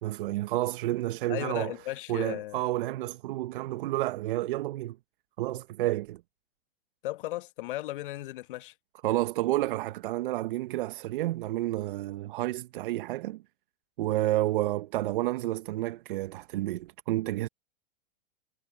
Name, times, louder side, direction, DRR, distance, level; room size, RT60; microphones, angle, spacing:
voice 1, 0.0-1.7 2.1-5.0 5.4-6.2 9.0-13.4 14.0-17.5, right 16 dB, 60° right, 1.0 m, -30 dB
voice 2, 1.3-2.6 7.0-8.7, left 16 dB, 60° left, 1.7 m, -36 dB
hypercardioid pair, 110°, 29 cm